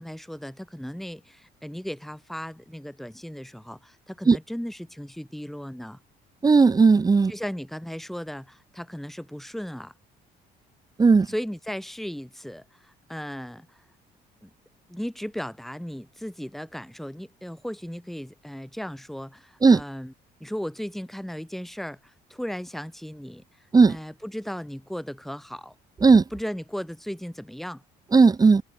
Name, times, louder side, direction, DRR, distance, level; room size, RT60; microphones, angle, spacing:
voice 1, 0.0-6.0 7.3-9.9 11.2-13.8 14.4-14.5 14.9-20.1 20.4-23.4 23.9-25.7 26.3-27.8, equal, ahead, 3.6 m, -36 dB
voice 2, 6.4-7.3 11.0-11.3 19.6-19.8 23.7-24.0 26.0-26.2 28.1-28.6, right 4 dB, 20° right, 1.4 m, -16 dB
cardioid pair, 110°, 17 cm